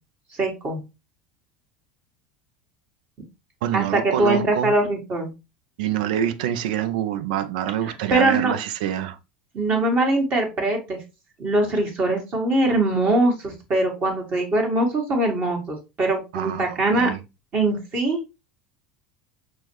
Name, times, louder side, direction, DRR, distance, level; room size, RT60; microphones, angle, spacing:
voice 1, 0.3-0.8 3.7-5.3 7.9-8.6 9.5-11.0 11.4-17.1 17.5-18.2, right 2 dB, 40° right, 1.3 m, -22 dB
voice 2, 3.6-4.8 5.8-9.2 16.3-17.2, right 10 dB, 65° right, 0.5 m, -26 dB
6.0 x 2.2 x 3.0 m
hypercardioid pair, 75°, 5 cm